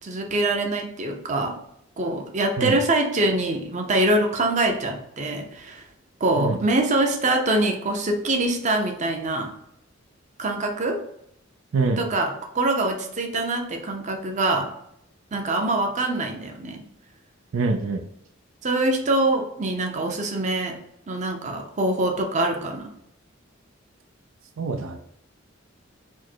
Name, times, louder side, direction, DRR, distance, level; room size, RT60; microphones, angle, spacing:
voice 1, 0.0-1.6 2.0-5.8 6.2-9.5 10.4-11.0 12.0-14.7 15.3-16.8 18.6-20.8 21.1-22.9, right 2 dB, 35° right, 3 dB, 0.6 m, -24 dB
voice 2, 11.7-12.0 17.5-18.1 24.6-25.0, right 3 dB, 80° right, 6 dB, 0.5 m, -25 dB
4.4 x 2.1 x 4.4 m, 0.74 s
head